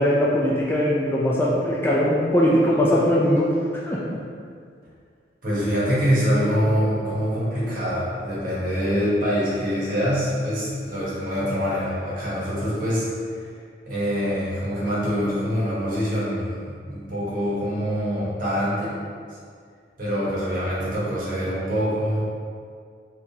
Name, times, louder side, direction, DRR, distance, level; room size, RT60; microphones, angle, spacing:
voice 1, 0.0-4.0, equal, 10° left, -6 dB, 0.3 m, -20 dB
voice 2, 5.4-13.1 13.3-13.4 13.8-18.9 20.0-22.2, equal, 50° right, -8 dB, 1.1 m, -24 dB
3.6 x 2.9 x 2.7 m, 2.1 s
head